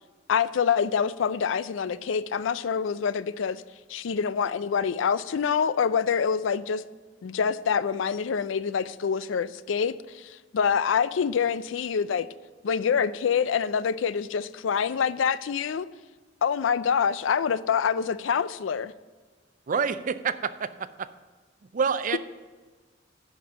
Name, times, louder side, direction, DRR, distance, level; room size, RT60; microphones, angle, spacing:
voice 1, 0.3-3.6 3.9-6.8 7.2-12.3 12.6-15.9 16.4-18.9, left 7 dB, 85° left, 16 dB, 0.4 m, -26 dB
voice 2, 19.7-21.1 21.7-22.2, right 6 dB, 45° right, 14 dB, 0.4 m, -27 dB
10.5 x 5.2 x 6.8 m, 1.4 s
head